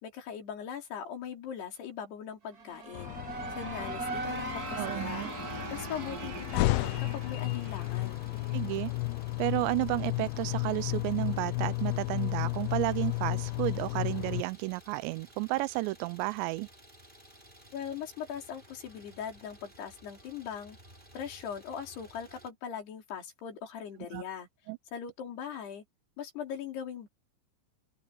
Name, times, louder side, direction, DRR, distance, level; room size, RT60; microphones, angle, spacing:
voice 1, 0.0-3.2 3.5-5.2 5.7-8.2 17.7-20.8 21.1-24.5 24.9-25.8 26.2-27.1, left 8 dB, 65° left, 5.6 m, -40 dB
sound 1, 2.4-9.2, right 3 dB, 30° right, 2.1 m, -40 dB
sound 2, 2.9-14.4, left 21 dB, 85° left, 2.3 m, -33 dB
Idling, 4.2-22.5, equal, 10° right, 6.1 m, -56 dB
voice 2, 4.8-5.3 8.5-8.9 9.4-16.7 24.1-24.2 24.7-24.8, right 21 dB, 90° right, 2.9 m, -32 dB
omnidirectional pair, 5.0 m